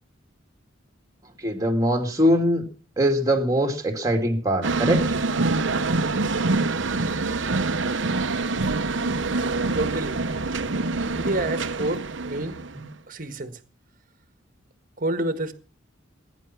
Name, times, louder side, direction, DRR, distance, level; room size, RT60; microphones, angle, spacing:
voice 1, 1.4-2.6 3.0-5.0 12.7-12.8, equal, 20° right, 3 dB, 2.5 m, -22 dB
sound 1, 4.6-12.9, right 3 dB, 70° right, 0.9 m, -25 dB
voice 2, 9.7-10.2 11.1-12.6 13.1-13.6 15.0-15.5, right 1 dB, 45° right, 9 dB, 1.6 m, -28 dB
21.0 x 10.5 x 6.0 m, 0.40 s
head